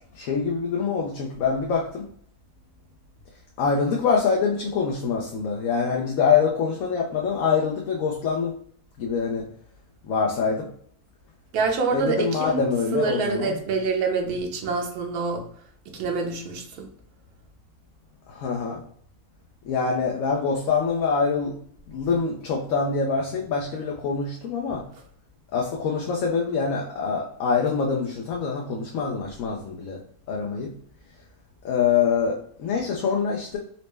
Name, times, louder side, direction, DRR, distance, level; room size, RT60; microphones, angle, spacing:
voice 1, 0.1-2.1 3.6-8.5 9.0-9.5 10.0-10.7 11.9-13.6 18.3-18.8 19.6-21.5 21.9-24.8 25.5-30.0 30.3-30.7 31.6-33.6, left 5 dB, 70° left, -1 dB, 0.9 m, -25 dB
voice 2, 11.5-12.6 12.9-15.4 15.9-16.9, right 4 dB, 85° right, 3 dB, 1.2 m, -26 dB
4.1 x 2.0 x 3.2 m, 0.62 s
omnidirectional pair, 1.6 m